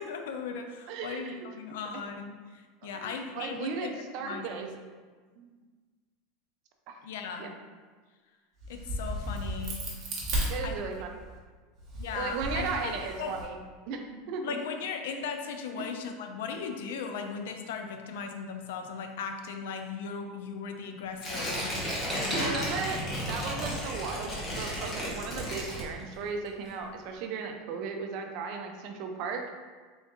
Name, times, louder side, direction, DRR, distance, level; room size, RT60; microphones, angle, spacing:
voice 1, 0.0-3.9 4.2-4.7 7.0-7.5 8.7-9.8 10.6-10.8 12.0-12.9 13.2-13.3 14.4-22.6, left 5 dB, 80° left, 5 dB, 0.4 m, -37 dB
voice 2, 0.9-1.5 2.9-4.7 5.4-5.5 6.9-7.0 7.4-7.5 10.5-11.3 12.1-13.6 13.9-14.6 15.8-16.0 22.3-23.0 23.3-29.5, right 5 dB, 50° right, 4 dB, 0.4 m, -36 dB
Crack, 8.6-11.2 11.8-13.4, right 1 dB, 30° right, 0.9 m, -34 dB
Tearing, 21.2-26.3 26.7-26.8, equal, 20° left, 0.8 m, -34 dB
sound 1, 22.1-24.8 25.1-27.5, right 1 dB, 5° right, 0.7 m, -44 dB
3.8 x 2.5 x 3.6 m, 1.4 s
supercardioid pair, 160°, 0 cm